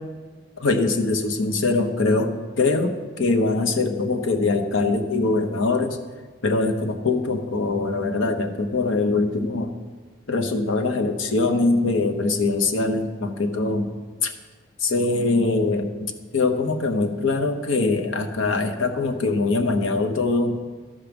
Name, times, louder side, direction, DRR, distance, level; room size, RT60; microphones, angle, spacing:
voice 1, 0.6-6.0 6.4-9.7 10.3-13.9 14.2-14.3 14.8-20.6, left 3 dB, 85° left, 5 dB, 0.9 m, -23 dB
12.5 x 5.2 x 6.0 m, 1.4 s
head